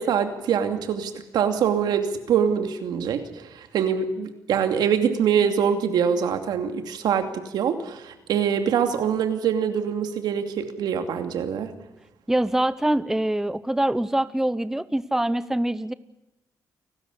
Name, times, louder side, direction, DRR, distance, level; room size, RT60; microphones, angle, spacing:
voice 1, 0.0-11.7, right 7 dB, 85° right, 7 dB, 2.6 m, -24 dB
voice 2, 12.3-15.9, right 1 dB, 5° right, 15 dB, 0.8 m, -24 dB
29.0 x 13.0 x 9.9 m, 0.93 s
cardioid pair, 95°, 7 cm